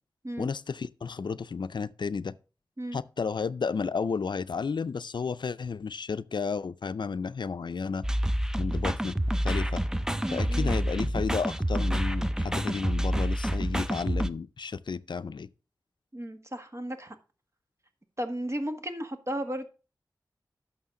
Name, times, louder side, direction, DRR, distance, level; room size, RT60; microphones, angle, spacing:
voice 1, 0.4-2.3 2.9-8.0 8.6-9.2 9.4-9.8 10.3-15.5, left 5 dB, 75° left, 0.4 m, -32 dB
sound 1, 8.0-14.3, equal, 10° right, 0.6 m, -28 dB
voice 2, 10.2-10.7 16.1-17.2 18.2-19.7, equal, 35° right, 1.6 m, -34 dB
11.0 x 6.4 x 3.7 m
cardioid pair, 45°, 8 cm